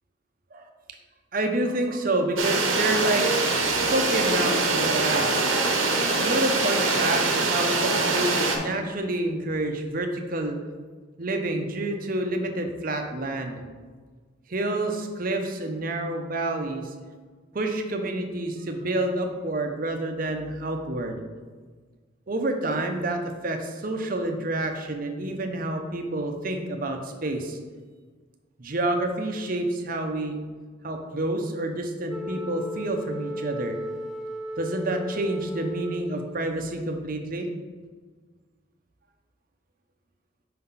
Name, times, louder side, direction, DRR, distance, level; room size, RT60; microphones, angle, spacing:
voice 1, 1.3-3.3 3.6-5.6 6.2-10.6 11.2-13.6 14.5-16.9 17.5-21.2 22.3-27.6 28.6-30.4 30.8-33.7 34.6-37.5, right 2 dB, 45° right, 4 dB, 0.7 m, -28 dB
sound 1, 2.4-8.6, right 3 dB, 80° right, 1.0 m, -23 dB
Wind instrument woodwind instrument, 32.1-36.5, equal, ahead, 0.4 m, -35 dB
5.6 x 3.9 x 5.6 m, 1.5 s
head